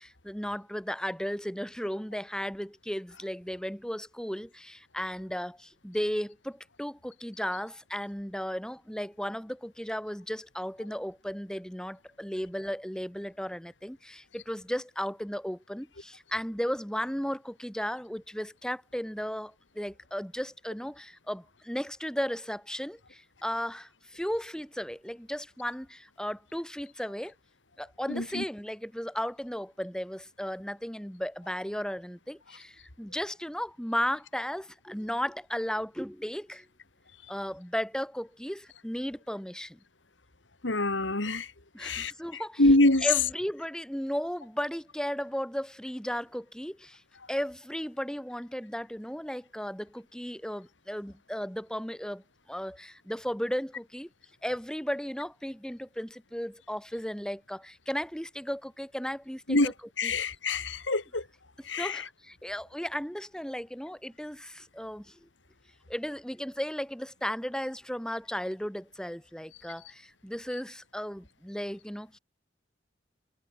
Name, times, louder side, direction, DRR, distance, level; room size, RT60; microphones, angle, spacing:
voice 1, 0.0-27.3 27.8-36.7 37.3-39.8 41.7-42.6 43.0-47.0 47.3-52.2 52.5-54.1 54.4-59.7 60.0-60.1 61.8-65.2 65.9-72.2, equal, 5° left, 2.7 m, -35 dB
voice 2, 28.1-28.4 40.6-41.5 41.8-43.1 59.5-61.2 61.6-62.0, left 2 dB, 85° left, 3.0 m, -26 dB
head